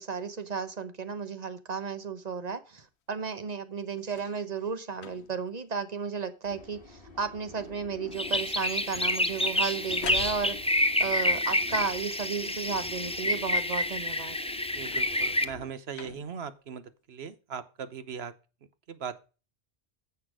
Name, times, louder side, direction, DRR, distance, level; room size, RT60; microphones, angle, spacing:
voice 1, 0.0-14.4, right 6 dB, 40° right, 11 dB, 1.1 m, -34 dB
sound 1, 4.0-4.4 4.9-5.5 6.1-6.5 6.7-7.3 9.0-10.9 14.7-15.3 15.9-16.5 17.3-17.4, left 7 dB, 75° left, 1.0 m, -45 dB
sound 2, 6.4-15.7, left 4 dB, 55° left, 2.3 m, -47 dB
sound 3, 8.1-15.4, left 1 dB, 5° left, 0.6 m, -28 dB
voice 2, 14.7-18.3 18.9-19.2, right 7 dB, 70° right, 13 dB, 1.2 m, -39 dB
10.0 x 7.2 x 4.9 m, 0.33 s
omnidirectional pair, 1.1 m